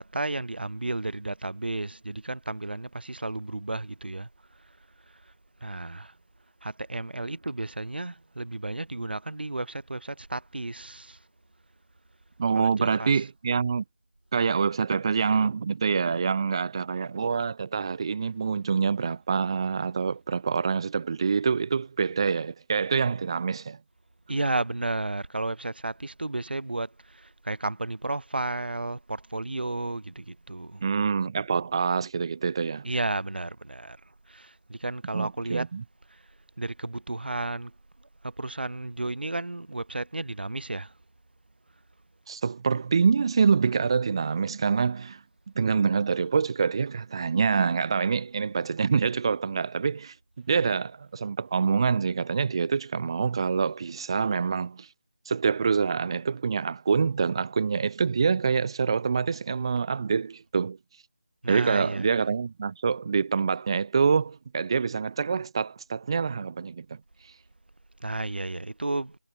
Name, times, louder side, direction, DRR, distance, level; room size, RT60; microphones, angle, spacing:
voice 1, 0.0-4.3 5.6-6.1 6.6-11.2 12.5-13.1 24.3-30.9 32.8-34.0 34.3-35.7 36.6-37.7 38.2-40.9 50.6-50.7 61.4-62.1 68.0-69.2, right 2 dB, 85° right, 1.6 m, -32 dB
voice 2, 12.4-13.8 14.3-23.8 30.8-32.9 35.1-35.8 42.3-45.2 45.6-50.1 50.5-54.9 55.3-60.8 61.5-67.0, right 5 dB, 30° right, 0.8 m, -26 dB
figure-of-eight pair, 170°, 5 cm